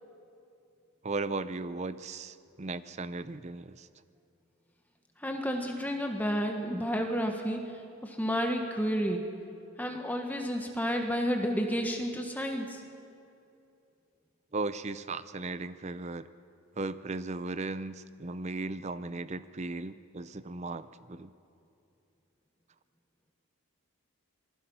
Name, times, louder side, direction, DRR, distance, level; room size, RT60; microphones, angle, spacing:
voice 1, 1.0-3.9 14.5-16.3 16.8-21.3, right 3 dB, 30° right, 13 dB, 0.6 m, -36 dB
voice 2, 5.2-7.6 8.0-9.2 9.8-12.8, equal, 5° left, 3 dB, 1.4 m, -31 dB
27.0 x 20.0 x 5.7 m, 2.6 s
head